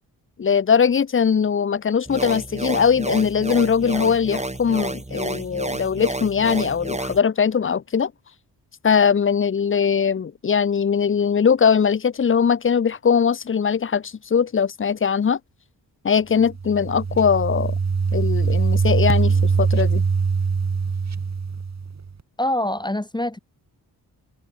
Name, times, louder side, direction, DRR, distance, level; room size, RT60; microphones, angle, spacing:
voice 1, 0.4-8.1 8.8-15.4 16.0-17.7 18.1-20.0, left 6 dB, 30° left, 0.7 m, -20 dB
sound 1, 2.1-7.2, right 2 dB, 15° right, 5.0 m, -30 dB
sound 2, 16.4-22.1, right 5 dB, 45° right, 3.6 m, -22 dB
voice 2, 22.4-23.4, left 1 dB, 10° left, 2.0 m, -24 dB
cardioid pair, 55°, 39 cm